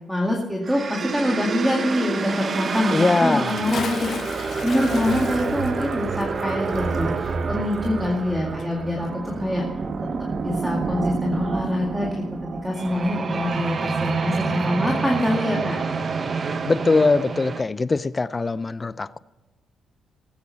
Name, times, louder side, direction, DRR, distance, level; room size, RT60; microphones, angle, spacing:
voice 1, 0.1-9.6 10.0-15.8, left 1 dB, 5° right, 0 dB, 2.1 m, -25 dB
sound 1, 0.6-17.6, right 4 dB, 40° right, 0.8 m, -28 dB
voice 2, 2.9-3.5 16.7-19.2, left 3 dB, 25° left, 17 dB, 0.4 m, -21 dB
Bathtub (filling or washing) / Splash splatter, 3.4-8.3 8.6-8.7, left 7 dB, 55° left, 0.8 m, -37 dB
18.5 x 8.4 x 4.2 m, 1.1 s
cardioid pair, 90°, 0 cm